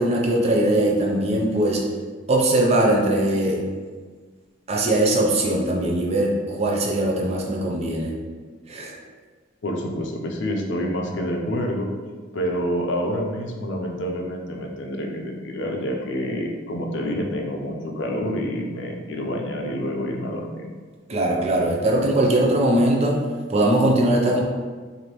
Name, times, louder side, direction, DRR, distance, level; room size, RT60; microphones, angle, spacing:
voice 1, 0.0-1.8 2.3-3.6 4.7-8.1 8.7-8.9 21.1-23.2 23.5-24.4, right 1 dB, 30° right, -1 dB, 0.5 m, -20 dB
voice 2, 9.6-11.9 12.3-20.7, equal, 60° left, 1 dB, 0.5 m, -27 dB
4.8 x 2.6 x 3.0 m, 1.5 s
head